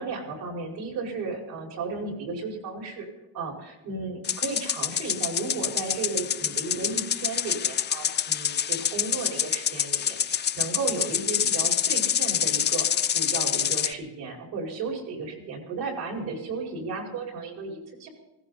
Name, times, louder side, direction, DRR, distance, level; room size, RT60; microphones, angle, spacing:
voice 1, 0.0-3.1 3.3-18.1, right 4 dB, 75° right, 1 dB, 5.4 m, -34 dB
sound 1, 4.2-13.9, left 9 dB, 30° left, 0.4 m, -27 dB
19.5 x 17.0 x 4.1 m, 1.0 s
cardioid pair, 180°, 37 cm